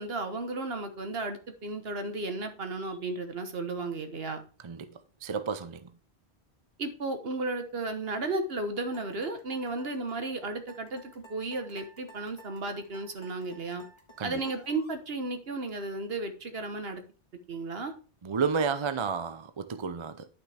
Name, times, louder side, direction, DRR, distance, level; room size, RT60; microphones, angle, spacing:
voice 1, 0.0-4.4 6.8-13.8 14.2-17.0 17.5-17.9, right 2 dB, 65° right, 1.4 m, -34 dB
voice 2, 4.6-5.9 14.2-14.4 18.2-20.3, right 5 dB, 35° right, 0.5 m, -31 dB
sound 1, 8.9-15.0, equal, 25° left, 1.6 m, -54 dB
10.5 x 6.0 x 3.4 m
omnidirectional pair, 1.1 m